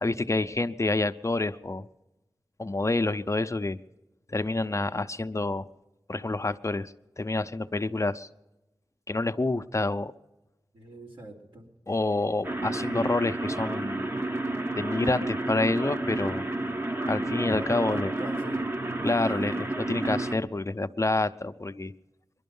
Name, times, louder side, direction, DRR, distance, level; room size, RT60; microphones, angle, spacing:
voice 1, 0.0-1.9 2.6-3.8 4.3-5.7 6.1-8.3 9.1-10.1 11.9-14.1 14.8-16.5 17.1-18.1 19.0-21.9, left 2 dB, 35° left, 10 dB, 0.6 m, -28 dB
voice 2, 10.7-11.7 17.6-18.7, right 1 dB, 85° right, -2 dB, 3.1 m, -42 dB
sound 1, 12.4-20.4, right 2 dB, 30° right, 0.9 m, -30 dB
22.0 x 12.0 x 5.4 m, 1.0 s
wide cardioid pair, 45°, 8 cm